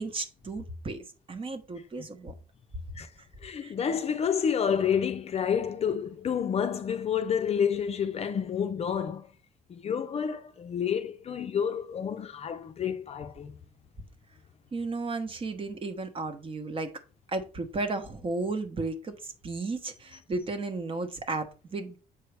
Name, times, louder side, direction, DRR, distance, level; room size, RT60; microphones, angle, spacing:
voice 1, 0.0-2.3 3.6-3.7 14.7-16.9 17.3-22.0, right 3 dB, 30° right, 1.0 m, -34 dB
voice 2, 3.4-9.3 9.7-13.5, left 7 dB, 40° left, 0.5 m, -29 dB
7.0 x 4.5 x 3.3 m
cardioid pair, 110°, 17 cm